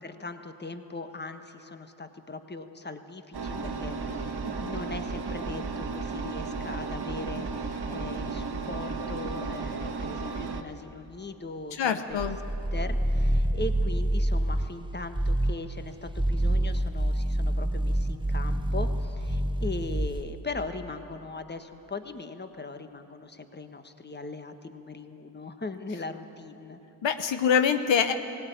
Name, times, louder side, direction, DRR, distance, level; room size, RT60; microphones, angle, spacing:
voice 1, 0.0-12.3 12.7-26.8, left 3 dB, 25° left, 8 dB, 1.4 m, -39 dB
Engine, 3.3-10.6, right 4 dB, 60° right, 1.6 m, -34 dB
voice 2, 11.8-12.4 27.0-28.1, left 7 dB, 80° left, 8 dB, 1.1 m, -24 dB
sound 1, 12.1-14.8 15.1-15.6 16.1-20.3, right 1 dB, 10° right, 0.6 m, -27 dB
18.0 x 17.5 x 9.4 m, 2.9 s
cardioid pair, 60°, 44 cm